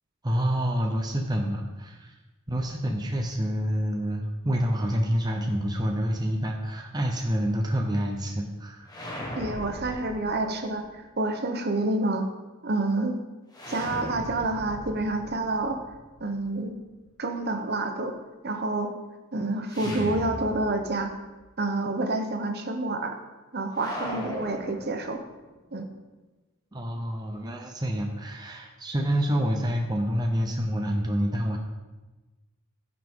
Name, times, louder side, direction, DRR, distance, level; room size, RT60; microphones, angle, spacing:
voice 1, 0.2-2.1 2.5-8.9 26.7-31.6, equal, 20° right, 1 dB, 0.8 m, -27 dB
sound 1, 8.9-10.8 13.5-16.5 19.7-21.1 21.4-21.5 23.7-25.5, equal, 20° left, 1.4 m, -38 dB
voice 2, 9.3-10.8 11.2-12.3 12.6-13.2 13.7-15.8 16.2-16.7 17.2-18.1 18.4-18.9 19.3-21.1 21.6-23.2 23.5-25.2 25.7-25.9, right 2 dB, 45° right, 5 dB, 1.0 m, -28 dB
15.5 x 6.0 x 3.8 m, 1.2 s
head